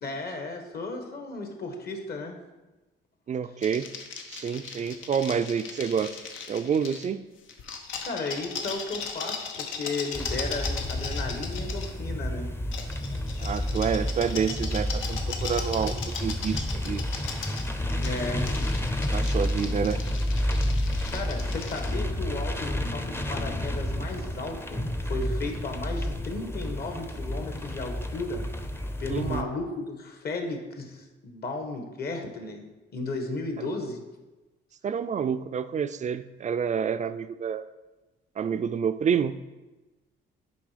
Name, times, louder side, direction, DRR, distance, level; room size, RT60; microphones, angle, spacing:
voice 1, 0.0-2.4 8.0-12.5 18.0-18.5 20.8-28.5 29.0-32.6 32.9-34.0, left 3 dB, 50° left, 4 dB, 1.4 m, -34 dB
voice 2, 3.3-3.9 4.3-6.1 6.5-7.2 13.4-17.0 19.1-20.0 29.1-29.5 34.8-37.6 38.4-39.4, right 7 dB, 35° right, 12 dB, 0.4 m, -28 dB
sound 1, 3.6-7.1 7.5-11.9 12.7-21.9, left 5 dB, 85° left, 1.0 m, -38 dB
sound 2, 10.1-29.4, left 1 dB, 10° left, 0.6 m, -30 dB
7.1 x 4.8 x 5.0 m, 1.1 s
cardioid pair, 90°, 20 cm